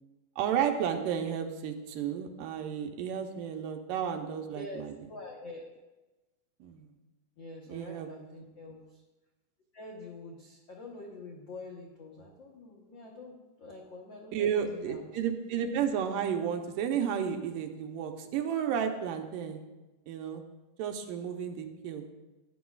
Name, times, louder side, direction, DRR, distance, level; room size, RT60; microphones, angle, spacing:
voice 1, 0.4-4.9 6.6-6.9 7.7-8.1 14.3-19.6 20.1-20.4 20.8-22.1, right 8 dB, 85° right, 5 dB, 2.4 m, -32 dB
voice 2, 4.5-5.6 7.4-9.0 9.7-15.0, left 2 dB, 85° left, -2 dB, 1.0 m, -46 dB
15.5 x 9.3 x 2.4 m, 1.1 s
omnidirectional pair, 3.9 m